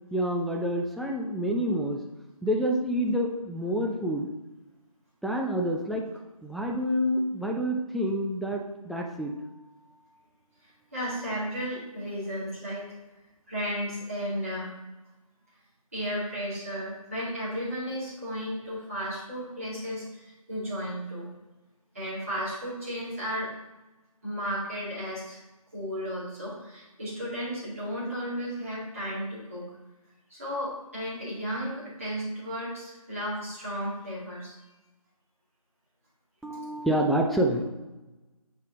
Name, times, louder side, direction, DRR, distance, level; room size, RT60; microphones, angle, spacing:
voice 1, 0.1-2.0 2.4-4.3 5.2-6.1 6.4-9.5 36.4-37.7, equal, ahead, -1 dB, 0.3 m, -28 dB
voice 2, 10.9-12.9 13.5-14.7 15.9-21.3 21.9-23.5 24.2-25.4 25.7-29.7 30.3-34.5, equal, 25° right, -9 dB, 2.1 m, -34 dB
7.1 x 5.4 x 3.7 m, 1.1 s
figure-of-eight pair, 175°, 19 cm